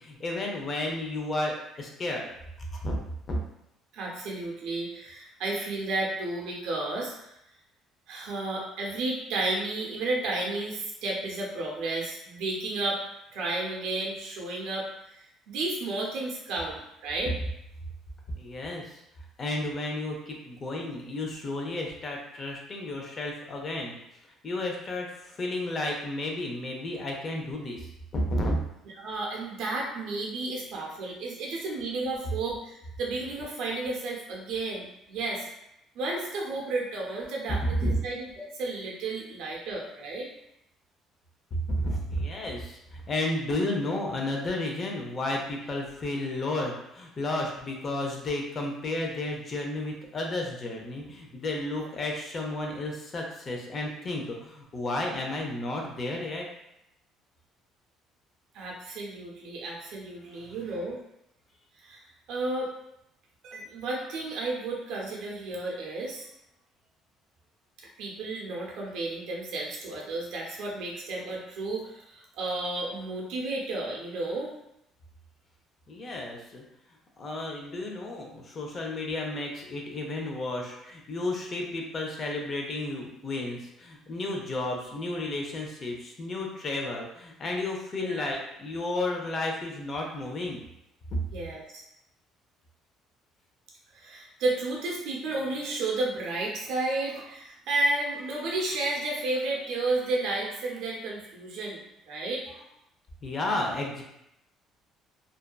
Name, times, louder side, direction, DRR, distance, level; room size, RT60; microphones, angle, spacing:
voice 1, 0.0-2.3 2.7-3.0 3.3-3.4 18.4-19.0 19.4-24.0 24.4-28.6 37.8-38.0 41.5-56.5 60.3-60.6 75.9-76.6 77.2-90.6 103.2-104.0, left 2 dB, 40° left, 0 dB, 0.6 m, -32 dB
voice 2, 3.9-7.3 8.1-13.0 13.3-17.3 28.9-35.5 35.9-40.3 51.8-51.9 58.5-61.0 61.8-62.7 63.4-66.3 68.0-74.5 80.8-80.9 88.0-88.3 91.3-91.8 93.9-102.7, right 2 dB, 75° right, -2 dB, 0.7 m, -32 dB
2.6 x 2.3 x 2.2 m, 0.81 s
cardioid pair, 100°, 0 cm